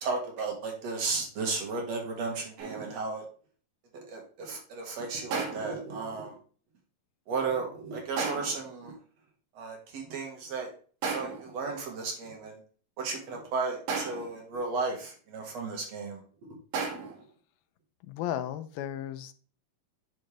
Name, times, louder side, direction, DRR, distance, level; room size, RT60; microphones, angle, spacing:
voice 1, 0.0-3.3 3.9-6.4 7.3-9.0 9.6-10.7 11.0-12.6 13.0-16.2 16.5-16.6, right 4 dB, 55° right, 1 dB, 2.5 m, -34 dB
sound 1, 2.6-3.0 5.3-5.9 8.2-8.7 11.0-11.6 13.9-14.5 16.7-17.3, right 4 dB, 80° right, 4.0 m, -34 dB
voice 2, 18.1-19.3, left 11 dB, 85° left, 10 dB, 2.5 m, -34 dB
8.7 x 6.5 x 3.4 m, 0.42 s
omnidirectional pair, 4.2 m